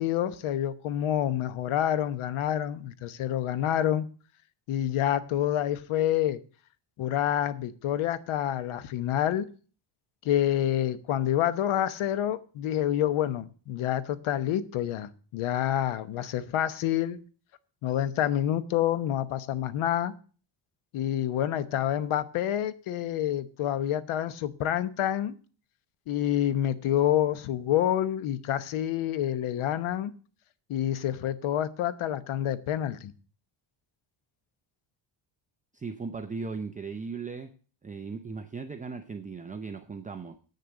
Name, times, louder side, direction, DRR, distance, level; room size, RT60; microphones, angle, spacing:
voice 1, 0.0-4.1 4.7-6.4 7.0-9.5 10.2-17.2 17.8-20.1 20.9-25.3 26.1-30.1 30.7-33.1, left 11 dB, 80° left, 1.1 m, -28 dB
voice 2, 35.7-37.5 37.8-40.4, right 4 dB, 15° right, 0.6 m, -37 dB
8.7 x 6.7 x 7.7 m
cardioid pair, 155°, 48 cm